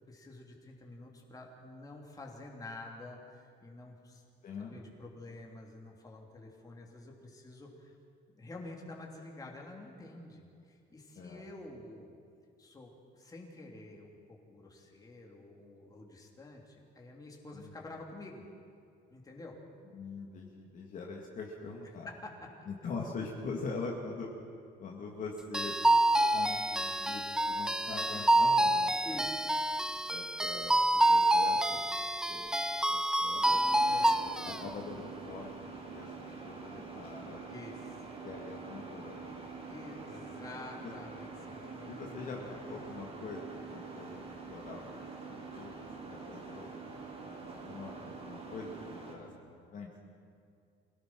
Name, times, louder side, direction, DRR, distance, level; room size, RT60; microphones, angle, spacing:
voice 1, 0.1-4.3 4.6-8.0 8.3-12.1 12.6-18.4 19.1-19.6 22.1-22.9 29.0-29.5 33.9-34.2 37.5-38.2 39.7-42.6, left 2 dB, 20° left, 0 dB, 3.2 m, -49 dB
voice 2, 4.4-4.8 11.2-11.4 17.5-17.7 19.9-22.1 22.7-24.3 24.8-25.8 26.3-29.2 30.1-31.9 32.2-32.5 32.8-33.6 34.2-37.5 38.2-39.2 40.8-40.9 41.9-46.7 47.4-49.9, left 4 dB, 40° left, -1 dB, 2.3 m, -43 dB
sound 1, 25.5-34.6, right 1 dB, 5° right, 0.5 m, -27 dB
sound 2, 33.4-49.2, right 4 dB, 30° right, 5.0 m, -45 dB
25.5 x 17.5 x 6.1 m, 2.4 s
cardioid pair, 145°, 19 cm